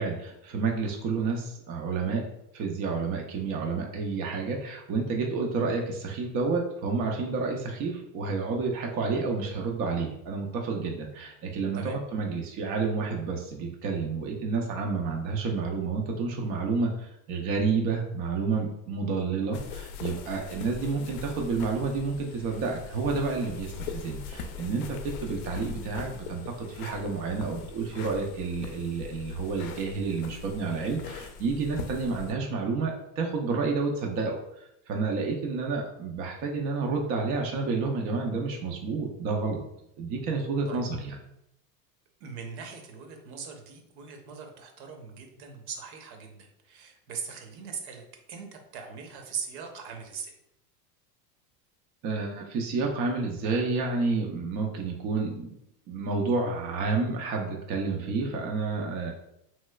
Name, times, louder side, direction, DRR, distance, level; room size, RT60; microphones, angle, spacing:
voice 1, 0.0-2.2 2.5-39.6 40.0-41.2 52.0-55.5 55.9-59.1, right 4 dB, 30° right, 1 dB, 0.4 m, -30 dB
sound 1, 19.5-32.3, left 6 dB, 65° left, 0.6 m, -41 dB
voice 2, 42.2-50.3, right 6 dB, 60° right, 4 dB, 0.8 m, -40 dB
3.1 x 2.9 x 2.2 m, 0.80 s
hypercardioid pair, 105°, 49 cm